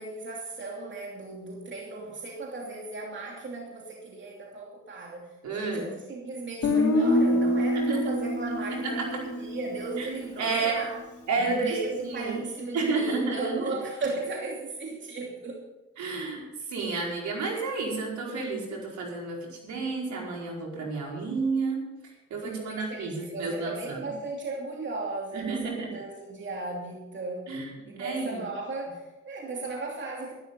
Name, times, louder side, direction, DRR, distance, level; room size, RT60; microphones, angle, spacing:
voice 1, 0.0-11.0 11.4-15.6 22.4-27.5 27.9-30.4, right 3 dB, 40° right, -2 dB, 2.8 m, -36 dB
voice 2, 5.4-5.9 7.7-8.0 8.8-9.0 10.0-10.1 10.4-10.8 11.3-11.8 12.0-12.4 12.7-13.5 16.0-24.1 25.3-25.9 27.5-27.7 28.0-28.4, right 3 dB, 70° right, -1 dB, 4.8 m, -31 dB
Guitar, 6.6-10.6, left 1 dB, 70° left, 3.0 m, -26 dB
13.0 x 12.0 x 5.5 m, 1.1 s
cardioid pair, 90°, 30 cm